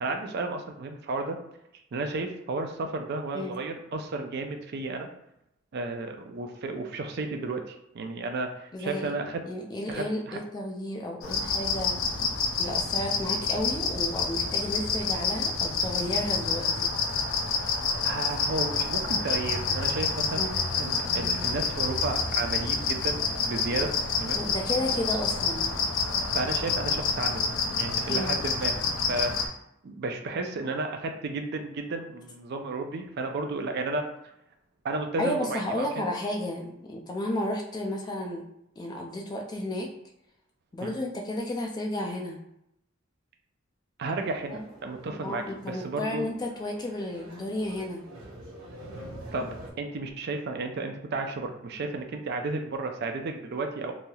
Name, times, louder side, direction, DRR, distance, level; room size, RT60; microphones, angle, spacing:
voice 1, 0.0-1.4 1.9-5.1 5.7-9.4 9.9-10.4 18.0-20.5 20.8-23.9 24.2-24.4 26.3-27.5 27.8-28.7 29.1-29.3 29.8-34.1 34.8-35.9 40.8-40.9 44.0-46.3 49.3-49.5 49.8-53.9, right 3 dB, 55° right, 5 dB, 0.4 m, -33 dB
voice 2, 8.7-9.2 9.4-12.0 12.6-16.9 20.3-20.5 24.3-25.8 28.1-28.4 35.2-38.5 38.8-39.9 40.7-42.4 44.5-44.6 45.2-48.0, left 1 dB, 20° left, 1 dB, 0.3 m, -32 dB
sound 1, 11.2-29.5, left 4 dB, 85° left, 0.4 m, -28 dB
sound 2, 44.2-49.7, right 1 dB, 80° right, 0.8 m, -46 dB
3.1 x 2.7 x 2.3 m, 0.80 s
head